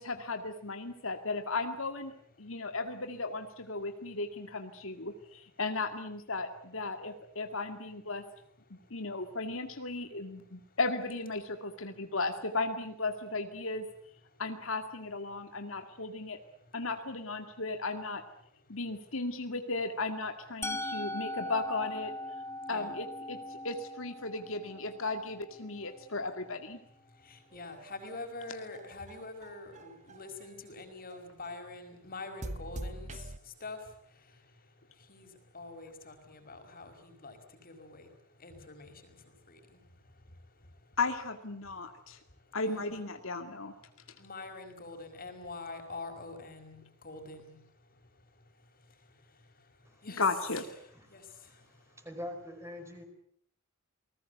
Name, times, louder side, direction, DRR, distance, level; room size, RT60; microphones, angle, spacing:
voice 1, 0.0-8.2 8.9-13.9 14.4-16.4 16.7-18.2 18.7-22.1 22.7-26.8 41.0-42.2 42.5-43.7 50.2-50.7, left 3 dB, 70° left, 7 dB, 2.1 m, -35 dB
Musical instrument, 20.6-26.5, left 1 dB, 15° left, 1.9 m, -41 dB
voice 2, 27.5-33.1 33.6-33.8 35.1-37.4 37.6-38.1 38.4-39.2 39.5-39.6 42.6-43.0 44.2-46.8 47.0-47.5 50.0-50.2 51.1-51.2, left 3 dB, 45° left, 6 dB, 5.2 m, -45 dB
sound 1, 27.5-30.6 31.1-31.7 32.4-33.4, right 1 dB, 35° right, 1.0 m, -44 dB
voice 3, 49.8-50.2 50.9-53.0, left 1 dB, 15° right, 5 dB, 4.9 m, -45 dB
28.5 x 20.0 x 8.0 m, 0.65 s
head